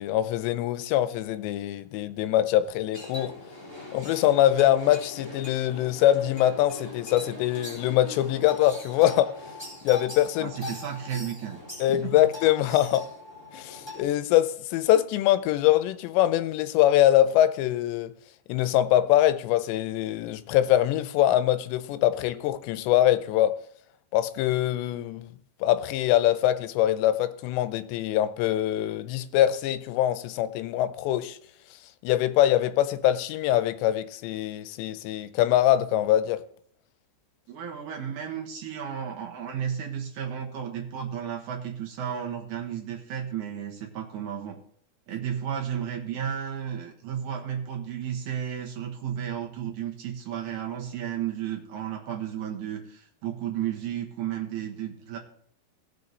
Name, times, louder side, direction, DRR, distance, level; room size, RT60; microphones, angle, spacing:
voice 1, 0.0-3.3 3.9-9.3 9.8-10.5 11.8-13.1 13.5-18.1 18.5-23.6 24.1-25.3 25.6-31.4 32.0-36.4, left 13 dB, 85° left, 2.8 m, -23 dB
sound 1, 2.9-14.0, left 2 dB, 5° left, 3.5 m, -41 dB
voice 2, 10.4-11.6 11.9-12.2 37.5-44.6 45.1-55.2, right 9 dB, 70° right, 1.9 m, -33 dB
17.0 x 6.4 x 4.0 m
omnidirectional pair, 5.1 m